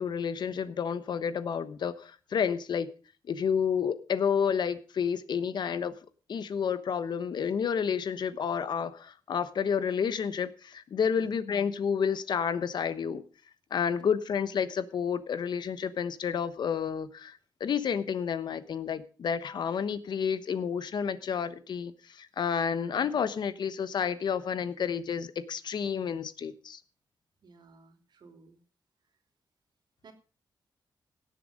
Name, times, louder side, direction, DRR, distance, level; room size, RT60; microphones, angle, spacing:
voice 1, 0.0-2.9 3.3-5.9 6.3-13.2 13.7-26.8, left 7 dB, 70° left, 13 dB, 1.1 m, -30 dB
voice 2, 27.4-28.6 30.0-30.1, right 4 dB, 70° right, 6 dB, 3.0 m, -55 dB
17.5 x 7.7 x 5.2 m, 0.37 s
wide cardioid pair, 105°, 8 cm